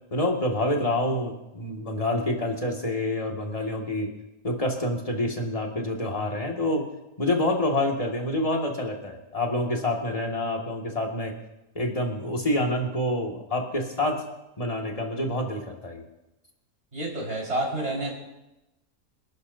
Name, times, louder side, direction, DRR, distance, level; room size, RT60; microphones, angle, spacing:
voice 1, 0.1-4.1 4.4-6.9 7.2-11.3 11.8-14.2 14.6-16.0, left 1 dB, 25° left, 0 dB, 2.2 m, -27 dB
voice 2, 16.9-18.1, right 1 dB, 55° right, -3 dB, 5.3 m, -29 dB
27.5 x 12.0 x 2.7 m, 0.94 s
omnidirectional pair, 1.4 m